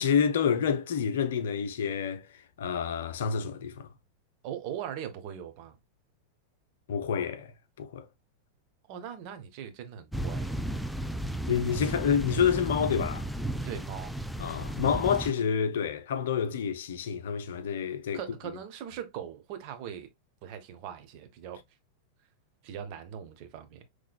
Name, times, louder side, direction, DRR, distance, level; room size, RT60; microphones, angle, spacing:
voice 1, 0.0-3.9 6.9-7.5 7.8-8.1 11.5-13.3 14.4-18.2, left 7 dB, 60° left, 0.6 m, -28 dB
voice 2, 4.4-5.8 8.9-10.6 13.6-14.1 18.1-20.1 20.4-21.6 22.6-23.8, right 9 dB, 45° right, 0.9 m, -40 dB
sound 1, 10.1-15.3, right 1 dB, ahead, 0.3 m, -34 dB
5.7 x 3.1 x 2.2 m
figure-of-eight pair, 90°, 0 cm